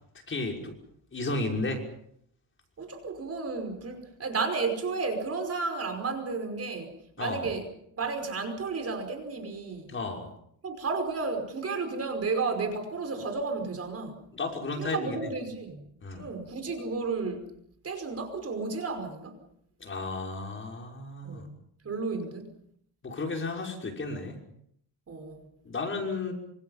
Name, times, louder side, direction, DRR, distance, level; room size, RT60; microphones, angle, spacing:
voice 1, 0.3-0.7 1.1-1.8 7.2-7.5 9.9-10.3 14.3-15.3 16.0-16.3 19.8-21.5 23.0-24.4 25.6-26.3, left 3 dB, 25° left, 1 dB, 5.9 m, -33 dB
voice 2, 2.8-7.7 8.0-10.0 10.6-14.2 14.8-17.5 17.8-19.4 21.2-21.5 21.8-22.5 25.1-25.5, right 4 dB, 30° right, 6 dB, 5.3 m, -32 dB
28.0 x 26.5 x 5.8 m, 0.70 s
cardioid pair, 135°, 47 cm